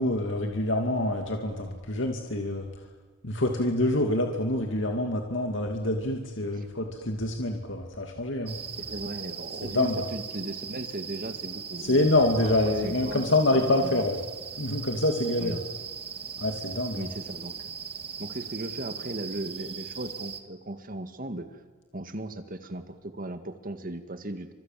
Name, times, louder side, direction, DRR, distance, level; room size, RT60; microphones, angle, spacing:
voice 1, 0.0-2.7 3.2-8.6 9.6-10.0 11.8-14.2 14.6-15.6 16.4-17.1, left 1 dB, 65° left, 3 dB, 2.6 m, -26 dB
sound 1, 8.5-20.4, right 6 dB, 30° right, 1.9 m, -39 dB
voice 2, 8.9-12.1 12.4-14.0 15.4-15.7 16.9-17.7 18.2-21.6 21.9-24.5, right 1 dB, 45° right, 9 dB, 1.9 m, -37 dB
30.0 x 25.5 x 7.6 m, 1.4 s
head